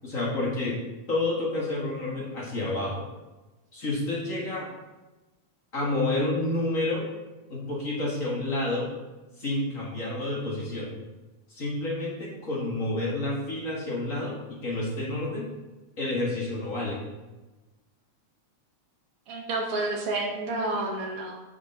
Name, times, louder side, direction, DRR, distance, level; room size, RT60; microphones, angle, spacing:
voice 1, 0.0-0.8 1.1-3.1 3.7-4.7 5.7-7.1 7.5-8.9 9.4-11.0 11.5-15.5 16.0-17.0, left 2 dB, 35° left, -4 dB, 1.4 m, -29 dB
voice 2, 19.3-21.4, right 2 dB, 55° right, 0 dB, 1.9 m, -30 dB
6.3 x 6.0 x 5.0 m, 1.1 s
omnidirectional pair, 3.4 m